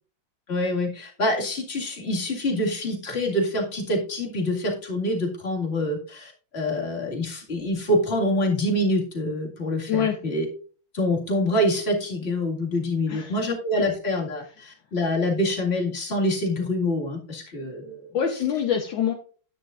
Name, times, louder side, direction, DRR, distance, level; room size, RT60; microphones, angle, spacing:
voice 1, 0.5-10.5 10.9-18.1, left 1 dB, 30° left, 0 dB, 2.2 m, -26 dB
voice 2, 18.1-19.1, left 8 dB, 70° left, 3 dB, 1.6 m, -24 dB
11.5 x 9.7 x 2.5 m, 0.40 s
omnidirectional pair, 2.3 m